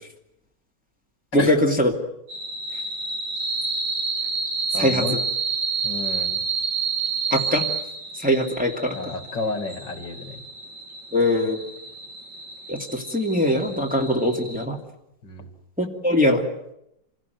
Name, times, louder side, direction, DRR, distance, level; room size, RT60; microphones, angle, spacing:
voice 1, 1.3-1.9 4.8-5.0 7.3-7.6 8.2-8.9 11.1-11.6 12.7-14.8 15.8-16.4, left 1 dB, 5° right, 1 dB, 2.6 m, -21 dB
sound 1, 2.3-14.6, right 5 dB, 65° right, 3.0 m, -30 dB
voice 2, 4.7-5.2 5.8-6.4 8.9-10.4 15.2-15.5, left 3 dB, 75° left, 7 dB, 3.0 m, -31 dB
26.5 x 16.5 x 9.4 m, 0.81 s
omnidirectional pair, 2.0 m